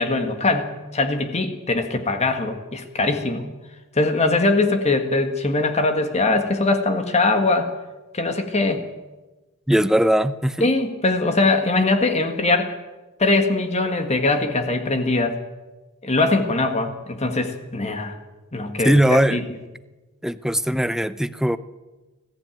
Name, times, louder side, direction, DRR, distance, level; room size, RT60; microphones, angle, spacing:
voice 1, 0.0-3.5 3.9-7.7 8.1-8.9 10.6-12.7 13.2-15.4 16.0-18.1 18.5-19.4, left 2 dB, 30° left, 6 dB, 1.7 m, -21 dB
voice 2, 9.7-10.7 18.8-19.4 20.2-21.6, right 1 dB, ahead, 13 dB, 0.6 m, -19 dB
20.5 x 15.0 x 9.0 m, 1.2 s
head